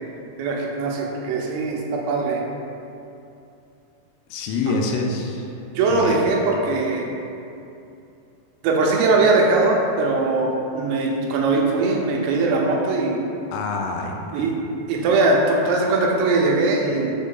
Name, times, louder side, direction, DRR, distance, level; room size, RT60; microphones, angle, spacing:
voice 1, 0.4-2.4 4.7-4.8 5.8-7.1 8.6-13.2 14.3-14.5 14.9-17.1, right 3 dB, 90° right, -1 dB, 3.1 m, -20 dB
voice 2, 4.3-5.5 5.9-6.3 13.5-14.2, left 3 dB, 90° left, 2 dB, 2.9 m, -26 dB
7.0 x 3.6 x 3.7 m, 2.7 s
omnidirectional pair, 5.1 m